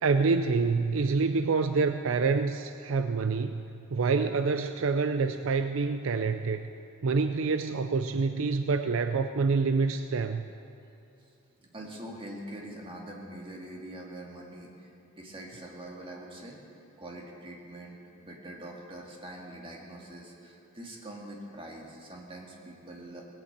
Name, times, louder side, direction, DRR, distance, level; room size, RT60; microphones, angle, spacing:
voice 1, 0.0-6.7 7.0-10.5, right 4 dB, 65° right, 9 dB, 0.5 m, -27 dB
voice 2, 11.6-14.9 15.2-16.6 17.0-23.3, right 1 dB, 25° right, -1 dB, 2.1 m, -44 dB
18.5 x 8.8 x 8.1 m, 2.7 s
head